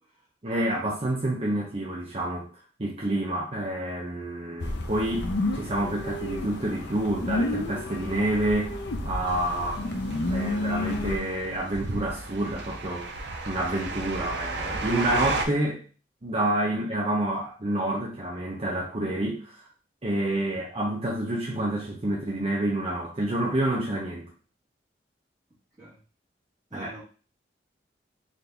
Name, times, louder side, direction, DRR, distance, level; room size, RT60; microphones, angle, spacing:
voice 1, 0.4-2.5 2.8-8.7 9.0-9.9 10.3-15.8 16.2-19.7 20.0-24.3 26.7-26.9, right 1 dB, 35° right, -4 dB, 0.8 m, -28 dB
sound 1, 4.6-11.2, left 2 dB, 65° left, 0.6 m, -31 dB
sound 2, 9.3-15.4, right 3 dB, 65° right, 0.6 m, -34 dB
voice 2, 26.7-27.0, right 1 dB, 20° right, -11 dB, 1.5 m, -44 dB
3.9 x 2.7 x 3.4 m, 0.36 s
head